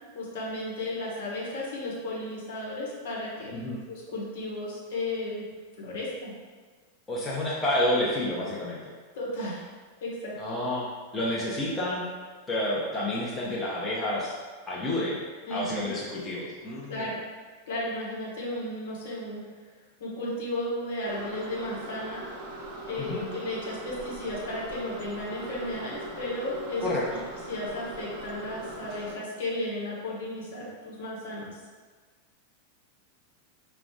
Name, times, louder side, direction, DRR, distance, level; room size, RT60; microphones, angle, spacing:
voice 1, 0.1-3.5 3.9-5.4 5.8-6.3 9.2-9.6 10.0-10.3 15.4-15.9 16.9-17.2 17.7-19.4 20.0-22.2 22.9-27.0 27.5-31.5, left 1 dB, 55° left, -5 dB, 1.2 m, -34 dB
voice 2, 7.1-8.9 10.4-10.9 11.1-12.0 12.5-14.3 14.7-15.2 15.5-17.0 23.0-23.2 26.8-27.2, left 1 dB, 10° left, -7 dB, 0.9 m, -29 dB
sound 1, 21.0-29.1, right 1 dB, 40° right, 0.7 m, -40 dB
4.9 x 2.3 x 3.7 m, 1.4 s
figure-of-eight pair, 90°, 0 cm